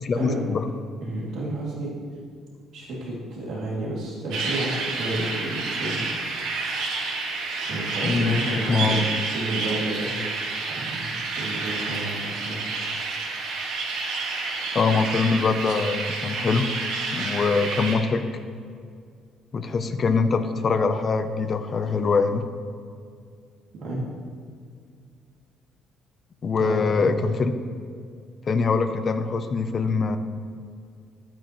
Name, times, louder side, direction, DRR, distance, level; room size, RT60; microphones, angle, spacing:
voice 1, 0.0-0.7 8.0-9.0 14.7-16.7 17.1-18.2 19.5-22.4 26.4-27.5 28.5-30.2, left 4 dB, 35° left, 9 dB, 0.6 m, -23 dB
voice 2, 1.0-1.9 2.7-6.2 7.6-10.1 10.7-12.6 23.7-24.1 26.6-27.1, right 1 dB, 60° right, -5 dB, 2.5 m, -31 dB
sound 1, 4.3-17.9, right 3 dB, 90° right, 1.7 m, -29 dB
12.5 x 8.9 x 3.1 m, 2.2 s
cardioid pair, 145°, 0 cm